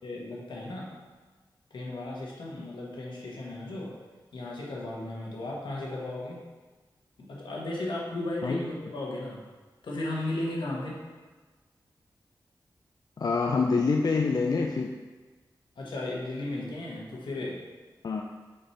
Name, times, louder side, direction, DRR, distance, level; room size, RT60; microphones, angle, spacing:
voice 1, 0.0-1.0 1.7-3.9 4.3-6.4 7.2-9.4 9.8-11.0 15.7-17.6, left 2 dB, 85° left, -3 dB, 1.4 m, -35 dB
voice 2, 13.2-14.9 18.0-18.2, left 4 dB, 55° left, 2 dB, 0.4 m, -26 dB
5.1 x 4.3 x 4.4 m, 1.3 s
wide cardioid pair, 80°, 8 cm